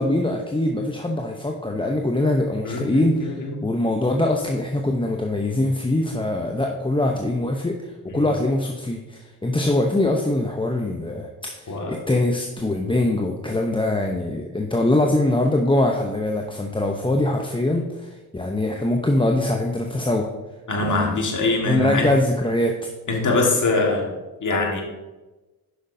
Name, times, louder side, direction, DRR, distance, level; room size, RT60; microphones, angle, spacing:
voice 1, 0.0-3.3 3.6-20.3 20.8-21.2 21.7-22.8, left 1 dB, 10° left, 2 dB, 0.7 m, -23 dB
voice 2, 2.6-3.6 8.1-8.2 11.7-11.9 20.7-22.1 23.1-24.1 24.4-24.8, left 3 dB, 40° left, 1 dB, 1.8 m, -23 dB
9.3 x 6.2 x 2.7 m, 1.1 s
supercardioid pair, 50°, 45 cm